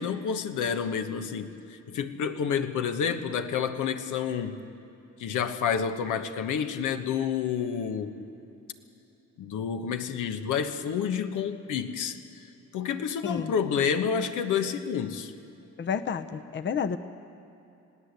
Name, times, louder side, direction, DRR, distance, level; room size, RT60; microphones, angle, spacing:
voice 1, 0.0-4.6 5.2-8.2 9.4-12.2 12.7-15.3, left 7 dB, 80° left, 7 dB, 1.3 m, -29 dB
voice 2, 15.8-17.0, left 6 dB, 40° left, 10 dB, 0.8 m, -30 dB
21.0 x 17.0 x 8.2 m, 2.8 s
cardioid pair, 90°, 30 cm